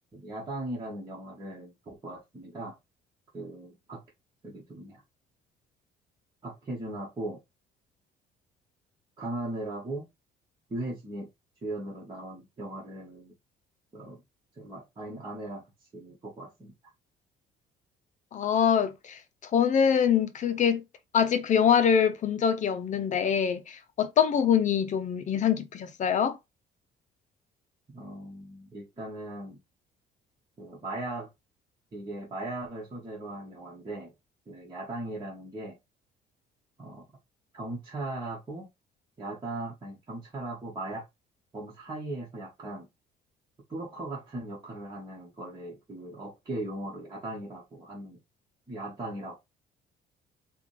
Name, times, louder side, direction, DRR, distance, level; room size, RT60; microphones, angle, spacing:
voice 1, 0.1-2.8 3.3-4.0 4.4-5.0 6.4-7.4 9.2-10.1 10.7-11.3 11.6-13.3 13.9-14.2 14.5-16.7 27.9-29.6 30.6-31.3 31.9-34.1 34.5-35.8 36.8-37.0 37.5-38.7 39.2-41.0 41.5-42.9 43.7-48.2 48.7-49.3, right 2 dB, 25° right, 1.6 m, -38 dB
voice 2, 18.3-20.8 21.1-26.4, left 7 dB, 45° left, 0.7 m, -24 dB
4.9 x 2.5 x 3.3 m
cardioid pair, 110°, 17 cm